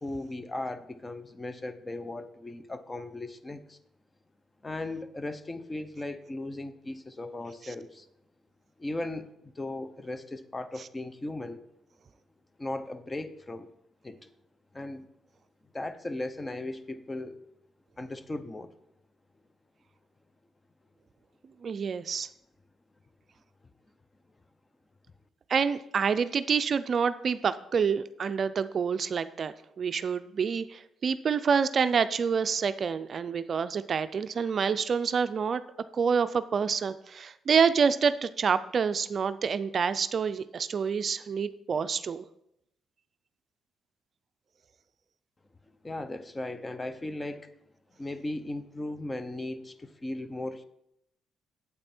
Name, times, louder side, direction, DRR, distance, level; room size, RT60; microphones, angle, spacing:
voice 1, 0.0-3.8 4.6-8.1 8.8-11.6 12.6-13.7 14.0-14.3 14.7-15.1 15.7-17.4 18.0-18.8 45.8-47.5 48.0-50.6, left 2 dB, 20° left, 12 dB, 0.7 m, -37 dB
voice 2, 21.6-22.3 25.5-35.6 35.9-42.2, right 6 dB, 50° right, 12 dB, 0.4 m, -27 dB
8.7 x 8.1 x 4.3 m, 0.80 s
cardioid pair, 90°, 0 cm